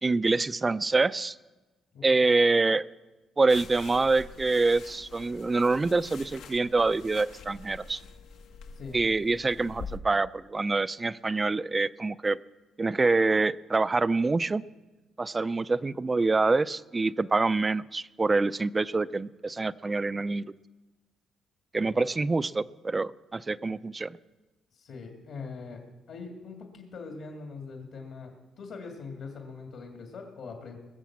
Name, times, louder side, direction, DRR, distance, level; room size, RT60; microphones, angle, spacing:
voice 1, 0.0-1.4 2.0-2.8 3.4-8.0 8.9-12.4 12.8-14.6 15.2-20.5 21.7-24.2, right 3 dB, 25° right, 17 dB, 0.4 m, -26 dB
sound 1, 3.5-10.0, left 5 dB, 90° left, 1.4 m, -45 dB
voice 2, 24.7-30.8, left 4 dB, 70° left, 2 dB, 2.3 m, -42 dB
21.0 x 7.1 x 7.3 m, 1.2 s
cardioid pair, 90°, 0 cm